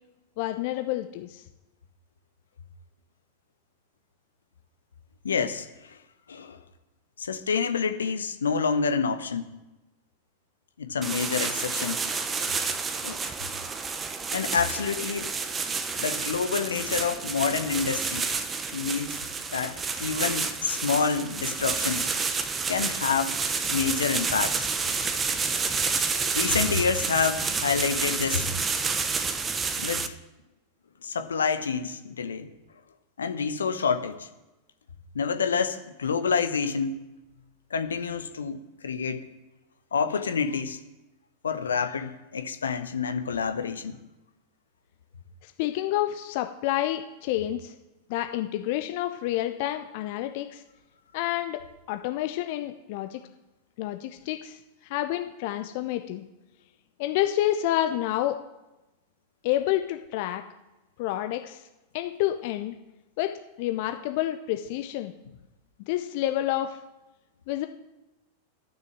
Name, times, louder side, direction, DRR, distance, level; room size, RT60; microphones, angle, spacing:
voice 1, 0.4-1.4 45.4-47.7 48.1-50.6 51.1-51.6 51.9-53.2 53.8-56.2 57.0-58.4 59.4-60.4 61.0-61.6 61.9-62.8 63.2-65.1 65.9-66.8 67.5-67.7, left 13 dB, 50° left, 7 dB, 0.7 m, -29 dB
voice 2, 5.2-6.0 6.3-6.6 7.2-9.5 10.8-12.0 13.0-13.2 14.3-15.3 16.0-18.3 18.7-19.2 19.5-22.1 22.7-23.4 23.6-24.7 26.3-28.5 29.8-30.1 31.0-32.5 33.2-34.3 35.1-37.0 37.7-39.3 39.9-40.8 41.4-44.0, left 5 dB, 70° left, 9 dB, 0.9 m, -28 dB
sound 1, 11.0-30.1, right 5 dB, 20° right, 0.9 m, -29 dB
12.0 x 6.6 x 7.4 m, 1.0 s
figure-of-eight pair, 90°, 0 cm